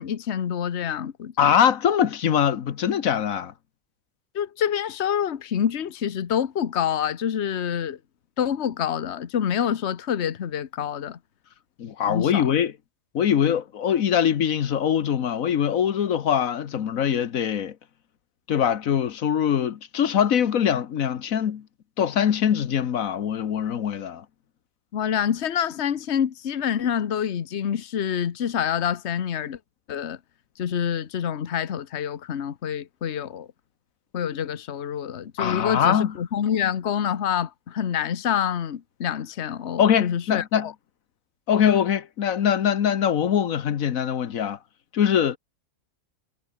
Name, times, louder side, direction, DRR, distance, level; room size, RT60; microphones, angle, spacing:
voice 1, 0.0-1.3 4.3-8.0 8.4-11.2 12.1-12.5 24.9-29.6 29.9-30.2 30.6-33.5 34.1-40.7, left 9 dB, 55° left, 1.3 m, -27 dB
voice 2, 1.4-3.5 11.8-12.7 13.1-17.7 18.5-21.6 22.0-24.2 35.4-36.1 39.8-40.7 41.5-44.6 44.9-45.4, left 9 dB, 85° left, 1.5 m, -22 dB
omnidirectional pair, 1.4 m